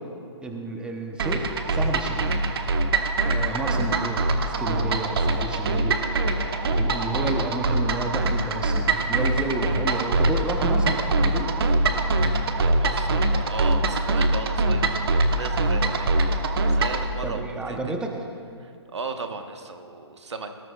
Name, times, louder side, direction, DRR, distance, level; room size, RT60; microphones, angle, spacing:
voice 1, 0.4-2.3 3.2-6.0 6.7-11.5 17.2-18.2, right 2 dB, 5° right, 2 dB, 0.8 m, -31 dB
sound 1, 1.2-17.1, right 2 dB, 60° right, 1.0 m, -23 dB
voice 2, 12.5-15.0 15.3-16.1 16.7-17.9 18.6-20.5, right 4 dB, 80° right, 6 dB, 1.2 m, -36 dB
18.5 x 14.0 x 2.4 m, 2.4 s
hypercardioid pair, 135°, 14 cm